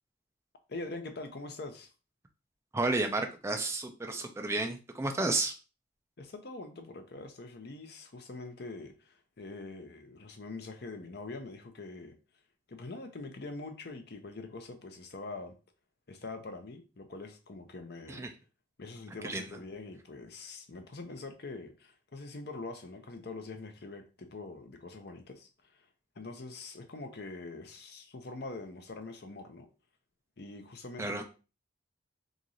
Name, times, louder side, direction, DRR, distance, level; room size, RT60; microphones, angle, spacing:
voice 1, 0.7-1.9 6.2-12.1 12.7-15.5 16.1-18.3 18.8-25.8 26.2-29.7 30.4-31.2, left 3 dB, 55° left, 0.7 m, -44 dB
voice 2, 2.7-5.5 18.1-18.3 19.2-19.5 31.0-31.2, right 2 dB, 15° right, 0.4 m, -32 dB
3.0 x 2.6 x 3.8 m
head